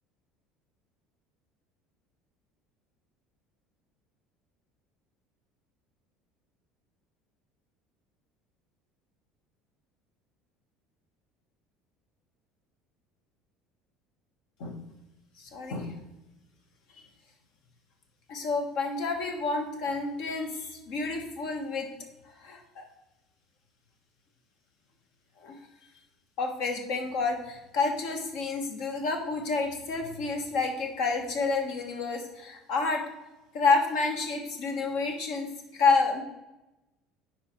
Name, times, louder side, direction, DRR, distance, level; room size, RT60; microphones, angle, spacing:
voice 1, 15.4-16.0 18.3-21.9 22.4-22.8 25.4-25.6 26.4-33.0 33.5-36.2, left 4 dB, 60° left, 3 dB, 1.2 m, -29 dB
10.5 x 4.5 x 3.1 m, 0.98 s
figure-of-eight pair, 65°, 0 cm